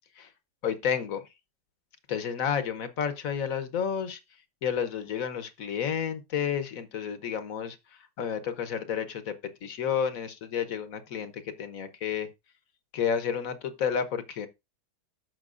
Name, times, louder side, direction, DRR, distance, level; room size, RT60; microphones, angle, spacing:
voice 1, 0.6-1.3 2.1-4.2 4.6-9.3 9.6-12.3 12.9-14.5, left 8 dB, 55° left, 1.3 m, -31 dB
14.0 x 5.8 x 2.5 m
omnidirectional pair, 1.8 m